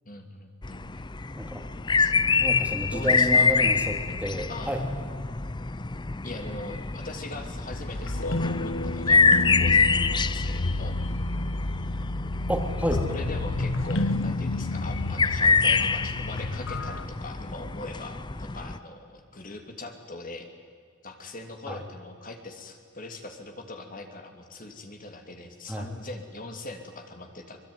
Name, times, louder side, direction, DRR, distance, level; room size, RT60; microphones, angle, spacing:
voice 1, 0.0-1.1 2.0-2.1 2.9-3.5 4.5-4.8 5.6-5.7 6.2-11.0 13.1-20.5 21.0-27.6, left 2 dB, 45° left, 4 dB, 2.9 m, -41 dB
sound 1, 0.6-18.8, left 4 dB, 25° left, 0.6 m, -26 dB
voice 2, 2.4-4.8 12.5-13.1 21.7-21.8 25.7-25.9, equal, 5° right, 3 dB, 2.7 m, -30 dB
sound 2, 7.7-17.1, left 2 dB, 75° left, 1.3 m, -30 dB
24.0 x 23.0 x 9.9 m, 2.1 s
head